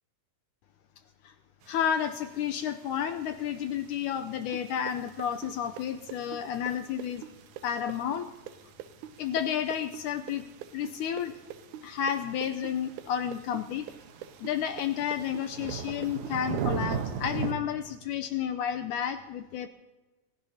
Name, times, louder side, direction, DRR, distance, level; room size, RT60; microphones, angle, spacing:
sound 1, 1.6-17.5, right 7 dB, 65° right, 2.1 m, -41 dB
voice 1, 1.7-7.2 7.6-8.3 9.2-10.4 10.7-11.4 11.8-13.9 14.4-19.7, left 9 dB, 85° left, 8 dB, 1.8 m, -31 dB
sound 2, 4.5-12.2 12.4-17.0, right 11 dB, 80° right, 1.7 m, -43 dB
28.0 x 16.0 x 2.8 m, 1.2 s
omnidirectional pair, 4.3 m